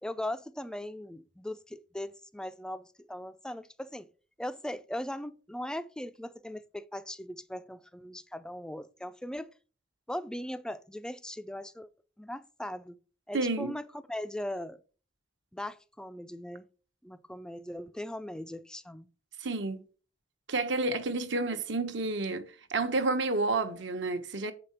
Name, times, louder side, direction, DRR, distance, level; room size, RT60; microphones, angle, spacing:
voice 1, 0.0-4.1 4.4-9.5 10.1-11.9 12.2-13.0 13.3-14.8 15.5-16.6 17.0-19.1, left 1 dB, 5° left, 0.4 m, -39 dB
voice 2, 13.3-13.7 19.4-19.8 20.5-24.5, right 3 dB, 70° right, 1.0 m, -30 dB
7.4 x 5.1 x 5.7 m
head